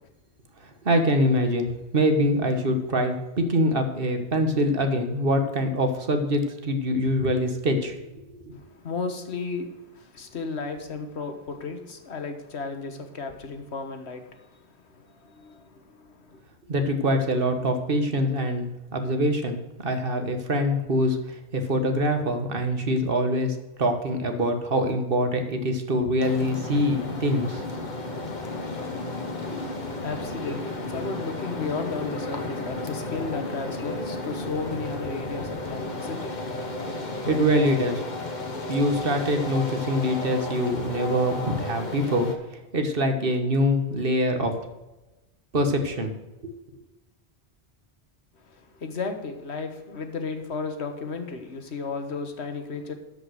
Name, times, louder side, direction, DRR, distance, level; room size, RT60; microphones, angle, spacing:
voice 1, 0.8-8.6 16.7-27.6 28.1-28.2 37.3-38.0 38.7-42.3 42.7-44.5 45.5-46.1 46.4-46.5, equal, 60° right, 1.5 m, -24 dB
voice 2, 8.5-14.6 14.9-16.4 29.6-36.4 48.5-52.9, left 4 dB, 90° left, 1.6 m, -34 dB
sound 1, 26.2-42.4, left 2 dB, 45° left, 1.3 m, -33 dB
12.5 x 5.4 x 6.4 m
omnidirectional pair, 1.1 m